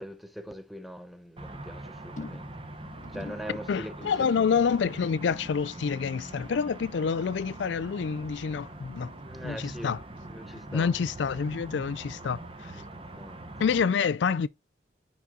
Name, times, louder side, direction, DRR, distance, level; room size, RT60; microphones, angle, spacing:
voice 1, 0.0-2.5 3.1-4.4 9.2-10.0 10.3-10.9 12.7-12.9 13.2-13.4, equal, ahead, 0.6 m, -42 dB
sound 1, 1.4-13.8, right 1 dB, 30° right, 0.8 m, -43 dB
sound 2, 2.2-8.7 9.0-9.4 9.8-9.9, left 2 dB, 45° left, 0.7 m, -49 dB
voice 2, 3.7-9.1 9.4-10.0 10.7-12.8 13.6-14.5, left 6 dB, 80° left, 0.4 m, -27 dB
5.4 x 5.1 x 3.8 m
head